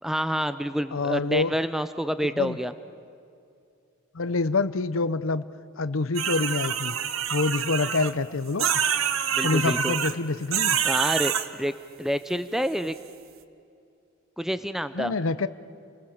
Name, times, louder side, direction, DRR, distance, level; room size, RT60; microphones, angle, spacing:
voice 1, 0.0-2.7 9.3-10.0 10.8-11.7 12.0-12.9 14.4-15.1, equal, ahead, 11 dB, 0.5 m, -28 dB
voice 2, 0.9-1.5 2.4-2.6 4.1-5.4 5.8-6.9 7.3-8.8 9.4-10.8 14.9-15.5, left 3 dB, 75° left, 14 dB, 0.8 m, -26 dB
sound 1, 6.1-8.1 8.6-10.1 10.5-11.5, right 8 dB, 85° right, 1.1 m, -26 dB
29.5 x 20.0 x 7.2 m, 2.5 s
head